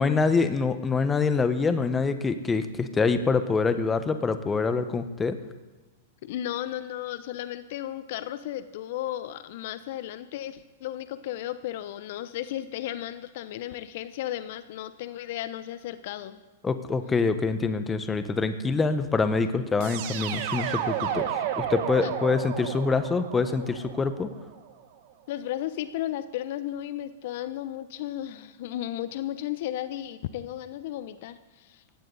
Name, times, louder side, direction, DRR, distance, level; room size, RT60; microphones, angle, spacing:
voice 1, 0.0-5.4 16.6-24.3, left 4 dB, 15° left, 10 dB, 1.3 m, -25 dB
voice 2, 6.2-16.4 22.0-22.1 25.3-31.8, left 12 dB, 60° left, 13 dB, 0.8 m, -34 dB
sound 1, 19.8-24.7, right 10 dB, 55° right, 1.8 m, -32 dB
19.0 x 16.0 x 4.1 m, 1.2 s
hypercardioid pair, 110°, 0 cm